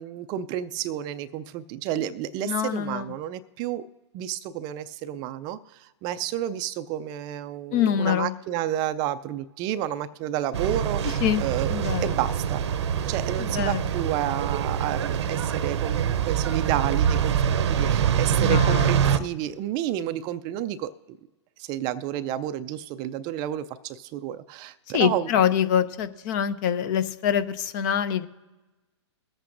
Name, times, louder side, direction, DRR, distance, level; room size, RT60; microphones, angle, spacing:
voice 1, 0.0-3.8 4.1-12.6 13.1-21.2 21.6-25.3, right 12 dB, 25° right, 12 dB, 0.3 m, -31 dB
voice 2, 2.5-3.1 7.7-8.3 11.2-12.2 13.4-13.9 18.4-19.2 24.9-28.3, left 9 dB, 40° left, 14 dB, 0.6 m, -25 dB
sound 1, 10.5-19.2, right 8 dB, 70° right, 0.7 m, -25 dB
22.0 x 8.1 x 2.5 m, 1.1 s
hypercardioid pair, 135°, 15 cm